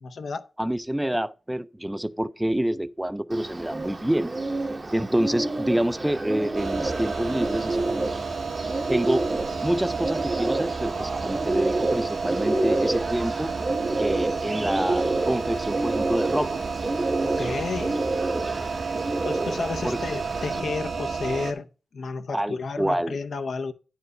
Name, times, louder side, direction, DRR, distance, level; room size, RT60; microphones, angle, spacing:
voice 1, 0.0-0.5 17.2-18.0 19.2-23.7, left 4 dB, 75° left, 0.7 m, -32 dB
voice 2, 0.6-4.3 4.9-8.1 8.9-13.5 14.0-16.6 19.8-20.0 22.3-23.2, right 1 dB, 10° right, 0.4 m, -27 dB
Bird, 3.3-20.6, right 2 dB, 35° right, 0.8 m, -29 dB
sound 1, 6.5-21.5, right 4 dB, 85° right, 1.4 m, -31 dB
9.7 x 4.6 x 6.2 m
cardioid pair, 75°, 0 cm